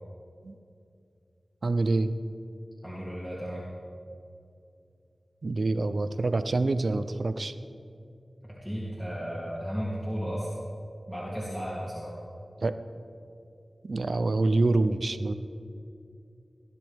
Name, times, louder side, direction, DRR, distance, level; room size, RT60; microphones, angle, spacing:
voice 1, 1.6-2.1 5.4-7.5 12.6-12.8 13.9-15.3, right 2 dB, 65° right, 11 dB, 0.6 m, -26 dB
voice 2, 2.8-3.6 8.4-10.5 11.1-12.2, equal, 5° left, -8 dB, 3.2 m, -34 dB
20.5 x 11.0 x 3.7 m, 2.5 s
cardioid pair, 50°, 0 cm